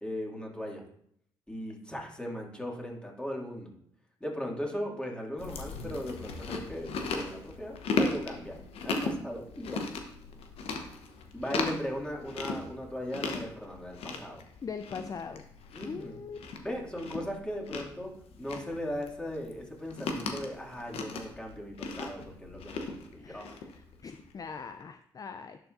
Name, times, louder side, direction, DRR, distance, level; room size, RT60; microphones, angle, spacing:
voice 1, 0.0-0.8 1.5-3.7 4.2-8.6 8.8-9.8 11.3-14.4 15.7-16.2 16.6-18.1 18.4-22.8 23.1-23.6, equal, 10° left, -2 dB, 2.4 m, -38 dB
Chewing mastication, 5.4-24.3, left 4 dB, 70° left, 0.9 m, -37 dB
voice 2, 14.6-15.5 15.8-16.4 23.2-25.6, left 5 dB, 35° left, 9 dB, 0.4 m, -41 dB
10.5 x 4.6 x 2.6 m, 0.70 s
supercardioid pair, 50°, 10 cm